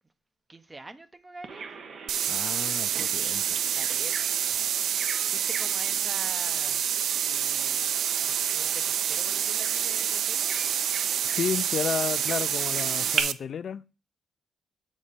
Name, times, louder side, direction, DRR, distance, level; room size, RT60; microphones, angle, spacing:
voice 1, 0.5-1.7 3.7-6.8 7.2-7.9 8.2-10.6, right 2 dB, 20° right, 0.7 m, -46 dB
Bird vocalization bird call bird song, 1.4-13.2, right 5 dB, 60° right, 1.1 m, -39 dB
sound 1, 2.1-13.3, right 9 dB, 80° right, 0.3 m, -27 dB
voice 2, 2.2-3.7 11.2-13.8, left 7 dB, 60° left, 0.4 m, -32 dB
7.3 x 4.2 x 5.1 m
cardioid pair, 90°, 0 cm